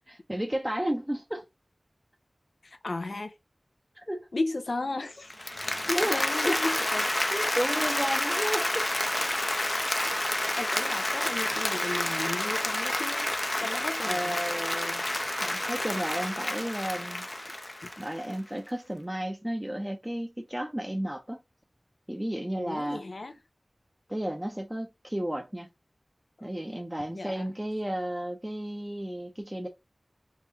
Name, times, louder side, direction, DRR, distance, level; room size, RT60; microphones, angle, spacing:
voice 1, 0.0-1.4 4.0-4.3 5.9-6.6 7.3-8.9 14.0-15.0 15.4-17.3 18.0-21.4 22.1-23.0 24.1-25.7 26.4-29.7, right 1 dB, 10° right, 0.7 m, -33 dB
voice 2, 2.6-3.3 4.3-5.3 5.9-7.1 10.6-13.3 13.6-14.4 22.6-23.4 27.1-27.5, left 2 dB, 75° left, 0.7 m, -34 dB
Applause, 5.3-18.3, left 1 dB, 30° left, 0.6 m, -29 dB
3.7 x 3.0 x 2.7 m
wide cardioid pair, 65°, 0 cm